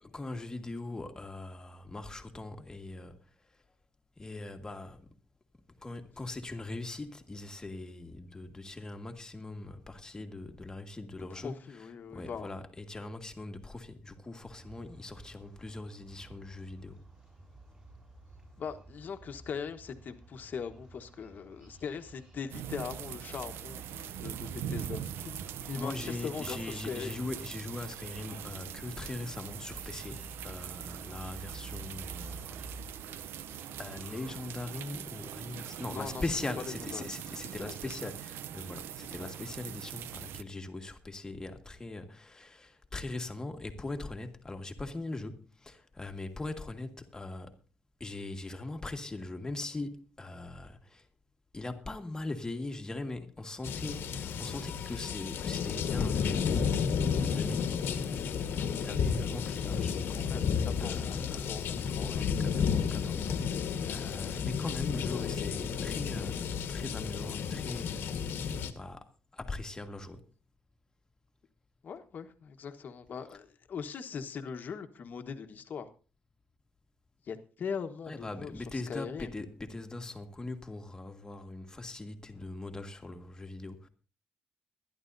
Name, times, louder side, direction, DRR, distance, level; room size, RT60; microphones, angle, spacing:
voice 1, 0.0-3.2 4.2-5.0 5.8-17.0 25.7-32.6 33.8-47.5 48.0-51.1 51.5-60.4 60.8-61.5 62.0-68.1 68.7-70.2 78.1-83.9, left 2 dB, 15° left, 1.7 m, -41 dB
voice 2, 11.3-12.5 18.6-25.4 25.7-27.2 35.9-36.2 36.7-37.1 37.6-38.1 39.2-39.3 60.1-62.3 71.8-75.9 77.3-79.3, left 6 dB, 50° left, 1.3 m, -41 dB
sound 1, 14.5-34.3, right 2 dB, 25° right, 7.7 m, -51 dB
sound 2, 22.5-40.4, right 10 dB, 80° right, 0.6 m, -42 dB
sound 3, 53.6-68.7, left 6 dB, 70° left, 1.4 m, -32 dB
22.0 x 11.0 x 2.7 m
cardioid pair, 110°, 4 cm